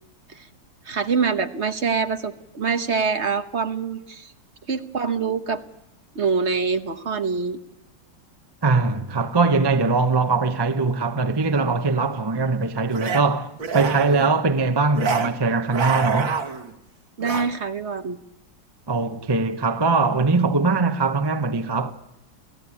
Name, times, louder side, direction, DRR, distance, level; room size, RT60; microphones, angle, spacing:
voice 1, 0.8-4.3 4.7-5.6 6.1-7.6 17.2-18.2, right 5 dB, 40° right, 1.3 m, -25 dB
voice 2, 8.6-16.4 18.9-21.9, right 4 dB, 25° right, 0.6 m, -21 dB
sound 1, 12.9-13.2 13.6-14.3 14.9-15.3 15.6-16.7 17.2-17.5, right 5 dB, 85° right, 2.8 m, -26 dB
29.5 x 17.5 x 10.0 m
omnidirectional pair, 2.0 m